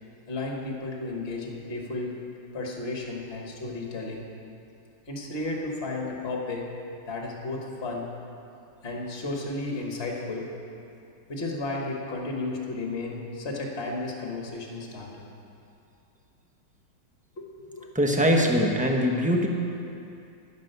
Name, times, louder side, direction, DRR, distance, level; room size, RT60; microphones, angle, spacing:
voice 1, 0.3-2.1 2.5-4.2 5.1-6.6 7.1-8.1 8.8-10.5 11.3-15.3 17.4-17.9, left 2 dB, 40° left, 0 dB, 1.6 m, -33 dB
voice 2, 17.9-19.5, equal, 5° right, 1 dB, 0.7 m, -22 dB
11.0 x 10.5 x 6.7 m, 2.6 s
omnidirectional pair, 1.9 m